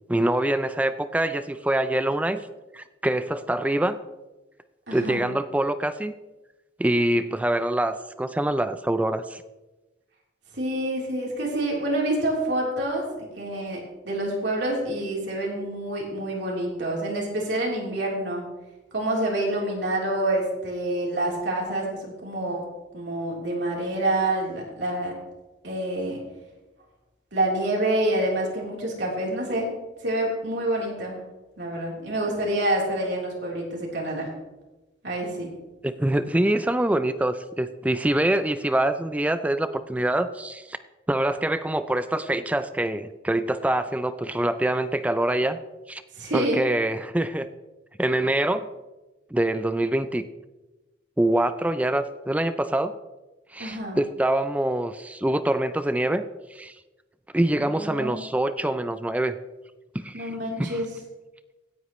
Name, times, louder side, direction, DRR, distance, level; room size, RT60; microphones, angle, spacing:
voice 1, 0.1-2.4 2.7-4.0 4.9-6.1 6.8-9.4 35.8-40.8 41.1-45.6 45.9-46.0 46.3-47.5 48.0-48.7 49.3-50.2 51.2-52.9 53.5-56.2 56.5-56.7 57.3-59.4 59.9-60.3 60.6-60.8, right 1 dB, 10° right, 12 dB, 0.3 m, -25 dB
voice 2, 4.9-5.3 10.5-13.8 14.0-18.4 18.9-22.6 22.9-25.1 25.6-26.2 27.3-29.7 30.0-31.2 31.6-34.3 35.0-35.5 46.2-46.6 53.6-54.0 57.6-58.2 60.1-60.9, right 1 dB, 75° right, -3 dB, 3.6 m, -27 dB
16.5 x 9.4 x 3.1 m, 1.1 s
head